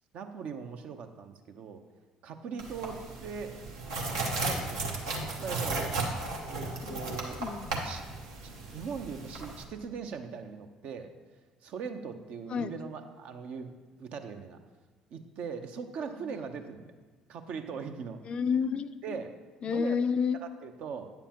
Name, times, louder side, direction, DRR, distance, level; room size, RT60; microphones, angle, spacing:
voice 1, 0.1-1.8 2.2-3.6 4.4-4.9 5.2-5.8 6.4-7.4 7.8-8.0 8.4-11.1 11.6-14.6 15.1-17.0 17.3-18.2 19.0-19.3 19.6-20.0 20.3-21.1, right 6 dB, 60° right, 7 dB, 0.6 m, -40 dB
sound 1, 2.6-9.6, right 2 dB, 80° right, 1.0 m, -35 dB
voice 2, 6.2-6.5 6.8-7.7 12.5-12.7 16.2-16.4 18.3-19.2 19.6-20.4, left 6 dB, 45° left, 11 dB, 0.4 m, -31 dB
9.1 x 7.0 x 2.9 m, 1.3 s
hypercardioid pair, 55°, 2 cm